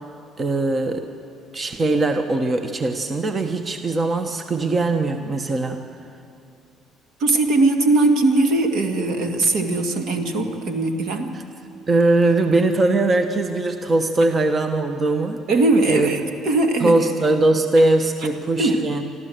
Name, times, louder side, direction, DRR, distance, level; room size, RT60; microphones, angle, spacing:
voice 1, 0.4-1.1 1.5-5.8 11.9-15.4 15.9-16.1 16.8-19.0, right 2 dB, 35° right, 7 dB, 1.2 m, -20 dB
voice 2, 7.2-11.4 15.5-17.0 18.6-18.9, right 2 dB, 70° right, 5 dB, 2.0 m, -20 dB
25.0 x 14.0 x 7.9 m, 2.5 s
supercardioid pair, 70°, 0 cm